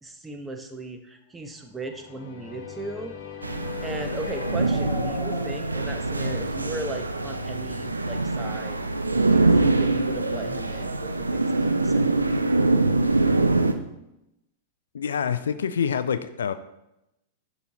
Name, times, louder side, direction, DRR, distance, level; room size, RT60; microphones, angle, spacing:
voice 1, 0.0-3.1 3.8-8.8 9.2-12.3, right 2 dB, 10° right, 6 dB, 0.8 m, -37 dB
sound 1, 1.8-6.6, left 9 dB, 50° left, 0.9 m, -41 dB
sound 2, 1.8-7.6, left 2 dB, 25° left, 1.7 m, -42 dB
sound 3, 3.4-13.7, right 2 dB, 85° right, 0.5 m, -24 dB
voice 2, 14.9-16.5, left 7 dB, 70° left, 11 dB, 0.4 m, -26 dB
10.5 x 4.0 x 3.0 m, 0.87 s
figure-of-eight pair, 95°, 0 cm